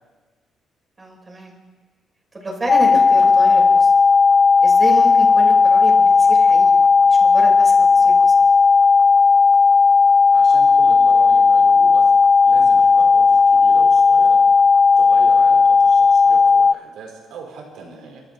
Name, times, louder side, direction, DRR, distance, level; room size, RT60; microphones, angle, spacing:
voice 1, 1.0-1.5 2.3-3.9 4.6-8.3, right 2 dB, 25° right, -1 dB, 5.8 m, -29 dB
sound 1, 2.7-16.7, left 4 dB, 35° left, 0.4 m, -13 dB
voice 2, 10.3-12.1 12.4-14.4 15.0-18.2, right 5 dB, 80° right, 0 dB, 4.1 m, -38 dB
26.5 x 13.0 x 4.0 m, 1.3 s
cardioid pair, 90°, 0 cm